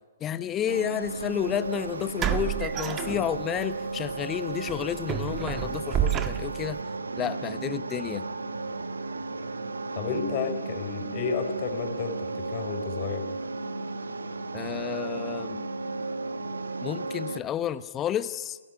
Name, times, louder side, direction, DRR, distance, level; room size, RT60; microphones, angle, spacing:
voice 1, 0.2-6.8 7.2-8.3 14.5-15.7 16.8-18.6, left 10 dB, 25° left, 13 dB, 1.0 m, -31 dB
sound 1, 0.7-17.4, right 3 dB, 85° right, 1.2 m, -34 dB
sound 2, 1.1-1.2 2.2-3.7 4.0-4.2 4.7-6.8, right 10 dB, 25° right, 1.6 m, -30 dB
voice 2, 10.0-13.2, left 6 dB, 45° left, 6 dB, 4.7 m, -31 dB
30.0 x 11.0 x 9.5 m, 1.3 s
hypercardioid pair, 125°, 0 cm